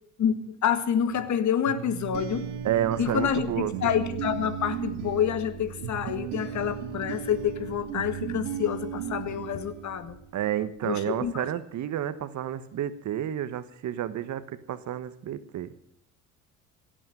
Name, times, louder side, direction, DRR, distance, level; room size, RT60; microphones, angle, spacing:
voice 1, 0.2-2.5 3.0-10.2 10.8-11.5, left 8 dB, 50° left, 12 dB, 2.0 m, -28 dB
sound 1, 1.7-10.4, right 9 dB, 85° right, 1.8 m, -36 dB
voice 2, 2.6-4.0 10.3-15.7, right 11 dB, 50° right, 14 dB, 1.2 m, -30 dB
16.5 x 8.9 x 9.0 m, 0.70 s
supercardioid pair, 80°, 36 cm